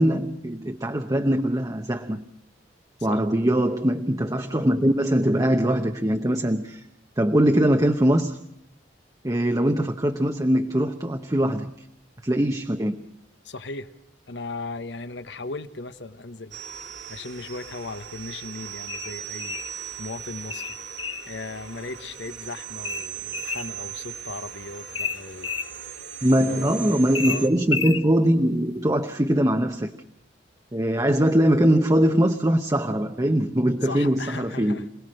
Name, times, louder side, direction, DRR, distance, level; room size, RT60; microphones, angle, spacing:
voice 1, 0.0-2.2 3.0-6.8 7.2-8.4 9.2-11.7 12.2-13.0 26.2-29.9 30.7-34.8, right 1 dB, 20° right, 4 dB, 0.9 m, -22 dB
voice 2, 13.4-13.9 14.3-16.6 17.1-20.8 21.3-26.0 26.5-26.7 27.2-27.5 33.8-34.9, left 3 dB, 65° left, 11 dB, 1.2 m, -37 dB
sound 1, 16.5-27.5, right 9 dB, 65° right, 2.2 m, -38 dB
sound 2, 18.9-19.7 20.5-21.3 22.8-23.7 24.9-25.7 27.1-28.0, left 5 dB, 25° left, 0.8 m, -31 dB
26.5 x 18.5 x 6.5 m, 0.74 s
head